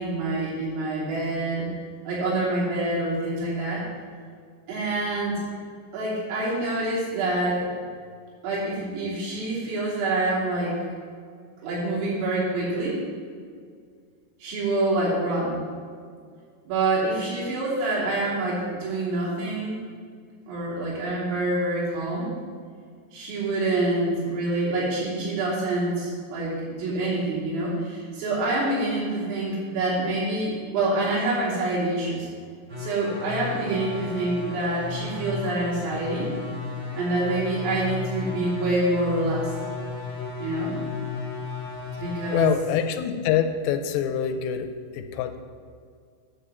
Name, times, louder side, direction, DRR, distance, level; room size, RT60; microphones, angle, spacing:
voice 1, 0.0-1.7 2.1-3.8 4.7-5.4 5.9-7.7 8.4-10.8 11.6-13.0 14.4-15.6 16.7-19.8 20.5-22.3 23.1-32.3 32.8-36.3 36.9-39.5 40.4-40.8 42.0-42.5, right 2 dB, 90° right, -7 dB, 5.7 m, -26 dB
sound 1, 32.7-42.5, left 5 dB, 30° right, 3.0 m, -34 dB
voice 2, 42.3-45.4, left 9 dB, 85° left, 8 dB, 3.3 m, -25 dB
9.7 x 5.5 x 7.3 m, 2.1 s
omnidirectional pair, 5.8 m